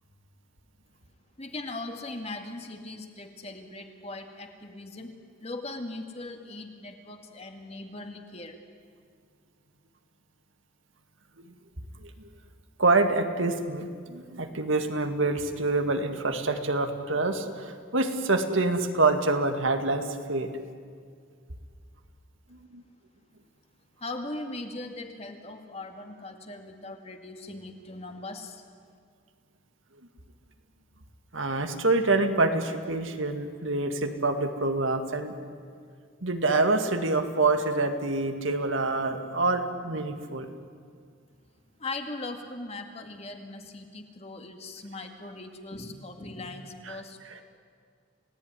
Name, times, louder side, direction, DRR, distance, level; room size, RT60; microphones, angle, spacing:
voice 1, 1.4-8.6 24.0-28.6 41.8-47.2, left 2 dB, 30° left, 5 dB, 2.2 m, -39 dB
voice 2, 12.8-20.5 22.7-22.8 31.3-35.3 36.2-40.5 46.9-47.0, right 3 dB, 70° right, 6 dB, 2.1 m, -26 dB
30.0 x 17.5 x 9.9 m, 2.1 s
head